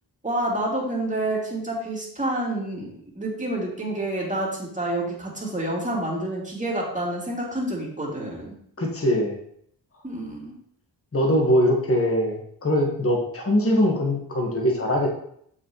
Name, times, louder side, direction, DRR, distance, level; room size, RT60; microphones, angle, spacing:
voice 1, 0.2-2.9 3.1-8.5 10.0-10.5, right 1 dB, 20° right, -3 dB, 2.5 m, -28 dB
voice 2, 8.8-9.4 11.1-15.1, equal, 30° left, 0 dB, 1.6 m, -22 dB
7.0 x 5.8 x 3.1 m, 0.68 s
cardioid pair, 50°, 42 cm